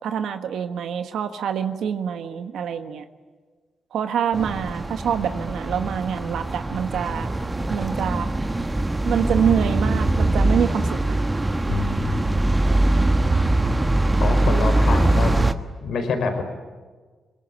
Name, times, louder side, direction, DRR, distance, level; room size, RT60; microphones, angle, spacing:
voice 1, 0.0-3.0 3.9-7.3 7.7-8.3 9.0-11.2, right 8 dB, 85° right, 8 dB, 1.4 m, -25 dB
sound 1, 4.3-15.5, right 2 dB, 20° right, 1.4 m, -22 dB
voice 2, 11.7-12.3 14.2-15.3 15.8-16.4, left 4 dB, 75° left, 7 dB, 4.6 m, -26 dB
23.5 x 21.5 x 10.0 m, 1.4 s
cardioid pair, 85°, 0 cm